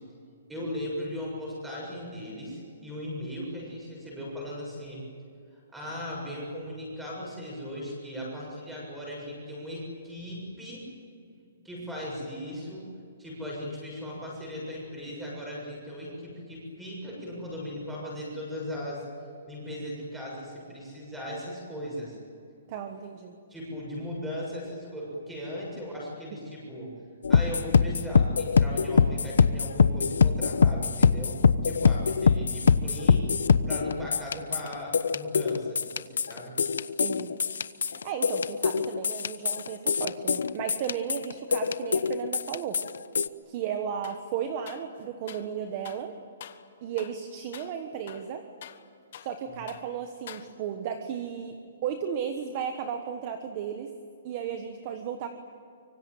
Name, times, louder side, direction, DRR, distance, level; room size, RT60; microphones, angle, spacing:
voice 1, 0.5-5.0 5.5-10.9 11.6-12.9 13.2-19.0 19.5-22.2 23.5-26.9 27.3-31.4 31.6-33.3 33.7-36.6, equal, 5° right, -3 dB, 7.1 m, -38 dB
voice 2, 22.7-23.3 32.4-32.5 37.0-37.3 37.8-42.8 43.5-46.1 46.8-48.4 49.2-51.5 51.8-53.9 54.2-55.3, right 8 dB, 25° right, 7 dB, 1.3 m, -34 dB
sound 1, 27.2-43.3, left 6 dB, 90° left, 1.0 m, -24 dB
sound 2, 44.0-44.3 44.7-45.5 45.8-46.1 46.4-46.7 47.0-47.2 47.5-47.8 48.1-49.4 49.7-49.9 50.3-50.8, left 9 dB, 40° left, 1.4 m, -47 dB
25.0 x 24.5 x 9.2 m, 2.3 s
hypercardioid pair, 180°, 0 cm